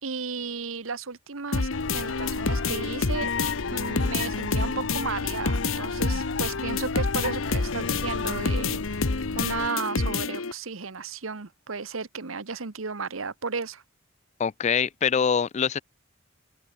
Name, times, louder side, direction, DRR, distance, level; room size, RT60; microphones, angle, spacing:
voice 1, 0.0-3.3 3.7-13.8, right 4 dB, 80° right, 1.3 m, -34 dB
sound 1, 1.5-10.5, left 3 dB, 80° left, 1.2 m, -28 dB
sound 2, 1.7-9.7, left 5 dB, 65° left, 0.7 m, -34 dB
voice 2, 14.4-15.8, left 6 dB, 35° left, 0.4 m, -24 dB
open air
head